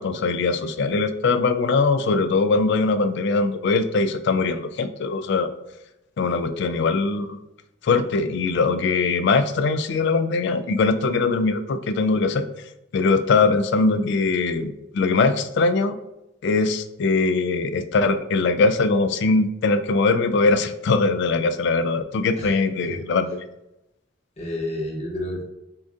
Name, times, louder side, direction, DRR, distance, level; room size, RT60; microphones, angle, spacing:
voice 1, 0.0-5.5 6.2-7.4 7.8-12.5 12.9-16.0 16.4-23.4, left 3 dB, 60° left, 10 dB, 0.3 m, -21 dB
voice 2, 22.3-23.0 24.4-25.4, left 1 dB, 35° left, -1 dB, 0.9 m, -31 dB
6.7 x 2.6 x 2.5 m, 0.90 s
head